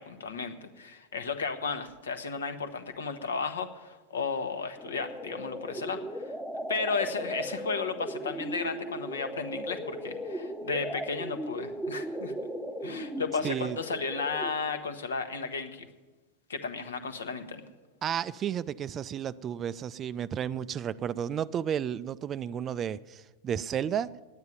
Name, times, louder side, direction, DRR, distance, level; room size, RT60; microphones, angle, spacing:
voice 1, 0.0-6.4 6.7-12.3 12.8-15.9 16.5-17.7, left 5 dB, 65° left, 9 dB, 1.0 m, -34 dB
sound 1, 4.8-14.8, equal, ahead, 0.8 m, -37 dB
voice 2, 13.4-13.8 18.0-24.1, right 9 dB, 25° right, 17 dB, 0.3 m, -32 dB
9.6 x 9.4 x 9.5 m, 1.2 s
figure-of-eight pair, 90°, 0 cm